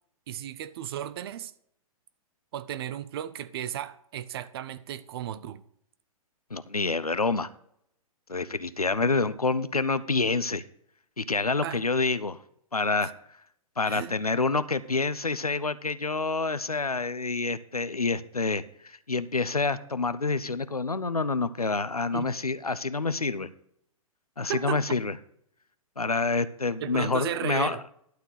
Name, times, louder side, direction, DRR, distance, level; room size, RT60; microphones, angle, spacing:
voice 1, 0.3-1.5 2.5-5.6 11.6-11.8 13.9-14.2 22.1-22.3 24.5-24.8 26.8-27.8, right 10 dB, 45° right, 0.7 m, -34 dB
voice 2, 6.5-7.5 8.3-10.6 11.2-12.4 12.7-13.1 13.8-23.5 24.4-25.1 26.0-27.8, left 3 dB, 85° left, 0.7 m, -27 dB
11.5 x 4.5 x 8.1 m
figure-of-eight pair, 110°, 19 cm